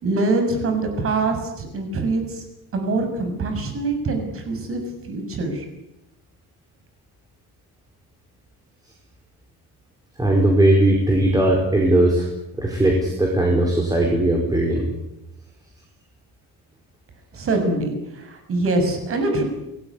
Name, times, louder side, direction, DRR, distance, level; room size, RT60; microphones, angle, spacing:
voice 1, 0.0-2.4 2.7-4.8 5.1-5.6 17.3-19.4, right 2 dB, 40° right, 6 dB, 6.7 m, -24 dB
voice 2, 10.2-12.3 12.6-14.8, right 1 dB, 10° right, 0 dB, 4.8 m, -18 dB
27.0 x 18.5 x 9.8 m, 0.89 s
cardioid pair, 175°, 33 cm